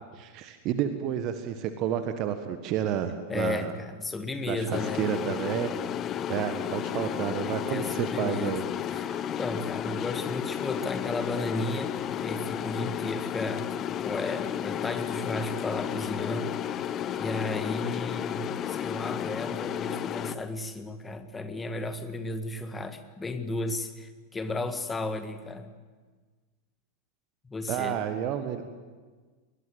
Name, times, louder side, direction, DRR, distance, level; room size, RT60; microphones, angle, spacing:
voice 1, 0.1-3.7 4.4-5.7 6.3-8.6 8.9-9.2 27.7-28.7, right 10 dB, 40° right, 9 dB, 1.5 m, -30 dB
voice 2, 3.3-5.1 7.4-8.6 8.9-9.1 9.4-11.9 12.2-13.7 14.0-16.6 17.1-25.7 27.4-28.0, left 2 dB, 15° left, 9 dB, 1.8 m, -34 dB
sound 1, 4.7-20.4, left 9 dB, 30° left, 0.8 m, -33 dB
21.5 x 20.5 x 7.9 m, 1.4 s
figure-of-eight pair, 90°, 0 cm